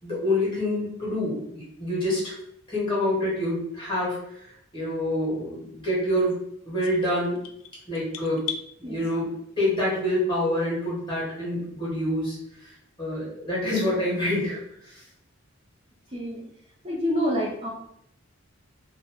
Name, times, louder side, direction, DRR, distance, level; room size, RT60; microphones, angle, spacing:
voice 1, 0.0-2.3 2.7-6.3 6.6-7.4 7.9-8.4 8.8-12.3 12.6-12.7 13.0-15.0, left 1 dB, 25° left, -7 dB, 1.3 m, -27 dB
sound 1, 6.8-8.7, left 9 dB, 80° left, 0.3 m, -37 dB
voice 2, 16.1-16.4 16.8-17.7, equal, 25° right, -5 dB, 0.5 m, -27 dB
2.6 x 2.2 x 3.4 m, 0.73 s
head